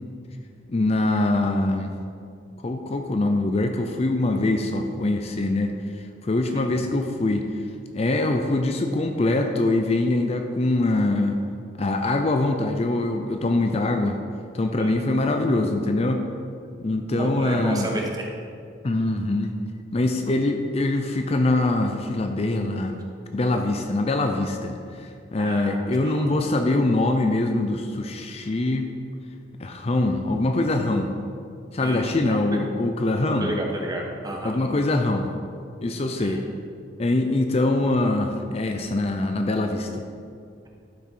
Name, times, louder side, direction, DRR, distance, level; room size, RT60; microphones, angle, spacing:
voice 1, 0.7-1.9 2.6-5.7 6.2-7.5 7.9-11.4 11.8-14.2 14.5-16.3 16.8-17.9 18.8-19.5 19.9-23.0 23.3-28.9 29.6-31.1 31.7-33.5 34.4-35.3 35.8-36.4 37.0-40.0, left 2 dB, 35° left, 5 dB, 0.5 m, -23 dB
voice 2, 14.8-15.1 17.1-18.3 25.4-26.4 31.8-32.6 33.4-34.6 36.2-36.5, right 1 dB, 20° right, 0 dB, 1.1 m, -32 dB
12.0 x 5.9 x 4.5 m, 2.4 s
head